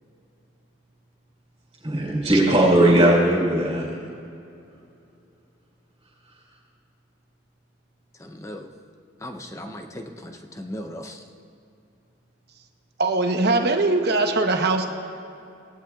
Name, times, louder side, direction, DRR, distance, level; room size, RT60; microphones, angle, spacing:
voice 1, 1.8-4.0, right 1 dB, 25° right, -7 dB, 3.5 m, -19 dB
voice 2, 2.5-3.1 13.0-14.9, right 2 dB, 50° right, 4 dB, 1.0 m, -21 dB
voice 3, 8.2-8.7 9.2-11.2, left 1 dB, 15° left, 5 dB, 0.7 m, -37 dB
18.0 x 18.0 x 2.4 m, 2.6 s
head